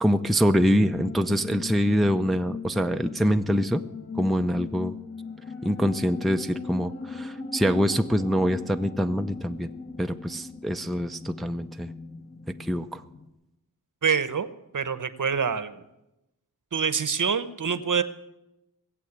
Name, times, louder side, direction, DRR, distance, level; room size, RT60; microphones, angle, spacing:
voice 1, 0.0-3.8 4.1-4.9 5.6-9.7 10.0-11.9 12.6-13.0, equal, ahead, 7 dB, 0.6 m, -24 dB
sound 1, 0.8-13.3, left 4 dB, 35° left, 1.3 m, -39 dB
voice 2, 14.0-14.5 14.7-15.8 16.7-18.0, right 6 dB, 55° right, 12 dB, 1.0 m, -26 dB
19.0 x 7.7 x 8.2 m, 0.93 s
wide cardioid pair, 60°, 37 cm